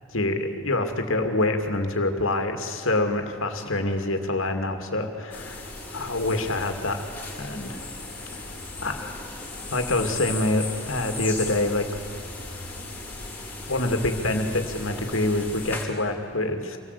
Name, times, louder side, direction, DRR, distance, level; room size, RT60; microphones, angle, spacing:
voice 1, 0.1-7.1 7.4-7.8 8.3-8.6 8.8-9.2 9.7-11.9 12.4-12.6 13.7-16.8, left 2 dB, 70° left, 6 dB, 2.5 m, -26 dB
sound 1, 5.3-15.8, left 3 dB, 10° left, 4.0 m, -37 dB
26.0 x 18.5 x 8.4 m, 2.8 s
head